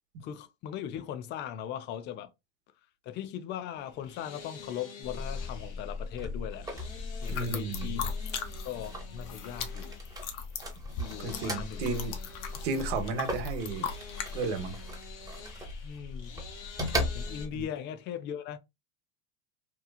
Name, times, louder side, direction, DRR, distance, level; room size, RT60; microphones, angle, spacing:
voice 1, 0.2-2.3 3.0-6.7 7.2-10.0 11.0-11.9 15.8-16.4 17.1-18.6, left 10 dB, 35° left, 0.4 m, -39 dB
sound 1, 3.7-17.5, left 4 dB, 85° left, 1.1 m, -49 dB
sound 2, 5.0-17.7, left 2 dB, 10° right, 0.8 m, -38 dB
sound 3, 7.2-8.9 9.1-14.3, left 7 dB, 60° left, 0.8 m, -38 dB
voice 2, 7.3-8.0 11.2-12.2 12.6-13.9 14.3-14.8 17.5-17.6, right 4 dB, 70° right, 0.9 m, -33 dB
3.0 x 2.3 x 2.2 m
supercardioid pair, 115°, 34 cm